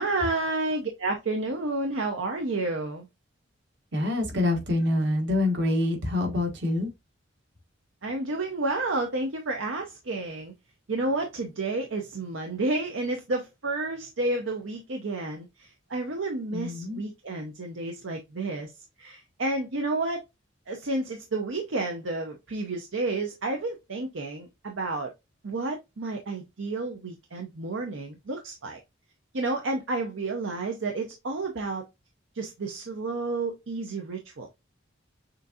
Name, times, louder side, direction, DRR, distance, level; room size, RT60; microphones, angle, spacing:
voice 1, 0.0-3.1 8.0-10.5 10.9-18.7 19.0-20.3 20.7-25.1 25.4-28.8 29.3-31.8 32.3-34.5, right 2 dB, 75° right, 0.7 m, -30 dB
voice 2, 3.9-6.9 16.5-17.0, left 2 dB, 60° right, 1.5 m, -26 dB
6.5 x 2.7 x 2.4 m
head